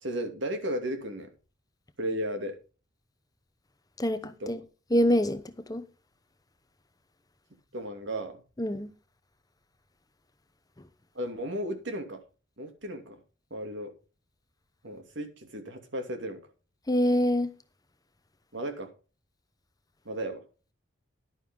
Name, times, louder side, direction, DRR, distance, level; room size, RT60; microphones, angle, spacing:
voice 1, 0.0-1.3 2.0-2.5 4.4-4.5 7.7-8.4 11.1-12.2 12.6-13.2 13.5-13.9 14.8-16.4 18.5-18.9 20.0-20.4, right 1 dB, 65° right, 2.6 m, -34 dB
voice 2, 4.0-4.6 4.9-5.4 5.7-5.8 8.6-8.9 16.9-17.5, equal, 20° left, 0.9 m, -25 dB
11.5 x 9.8 x 3.8 m
head